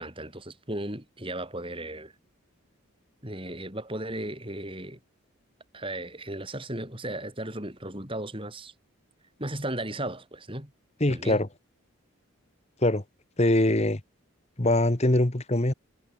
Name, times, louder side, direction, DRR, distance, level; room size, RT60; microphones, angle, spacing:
voice 1, 0.0-2.1 3.2-5.0 5.7-8.7 9.4-10.7 11.1-11.4, right 1 dB, 25° right, 6.9 m, -35 dB
voice 2, 11.0-11.5 12.8-13.0 13.4-14.0 14.6-15.7, left 1 dB, 30° left, 1.3 m, -23 dB
head